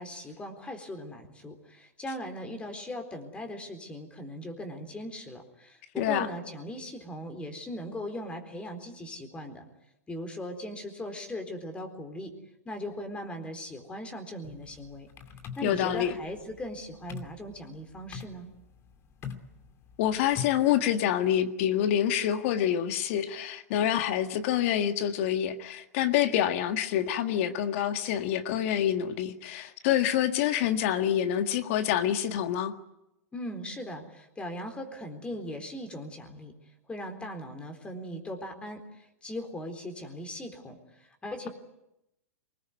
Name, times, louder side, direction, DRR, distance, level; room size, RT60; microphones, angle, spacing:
voice 1, 0.0-9.7 10.1-12.3 12.6-15.1 15.6-18.5 33.3-36.5 36.9-41.5, left 1 dB, 15° left, 6 dB, 4.0 m, -39 dB
sound 1, 14.4-20.8, left 7 dB, 30° left, 2.5 m, -43 dB
voice 2, 15.6-16.2 20.0-32.7, left 10 dB, 55° left, 8 dB, 1.8 m, -27 dB
23.5 x 20.5 x 9.5 m, 0.88 s
hypercardioid pair, 115°, 8 cm